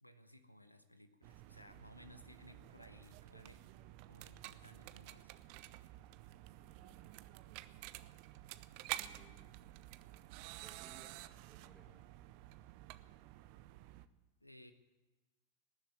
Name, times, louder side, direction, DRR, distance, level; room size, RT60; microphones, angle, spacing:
voice 1, 0.0-3.6 4.1-5.3 14.4-14.7, left 1 dB, 90° left, 11 dB, 0.9 m, -59 dB
sound 1, 1.2-14.1, right 16 dB, 45° right, 0.6 m, -51 dB
voice 2, 6.5-7.2 8.8-9.8 10.6-11.2 11.5-12.0, right 3 dB, 15° right, 1 dB, 3.0 m, -64 dB
19.5 x 7.4 x 9.4 m, 1.1 s
figure-of-eight pair, 90°, 0 cm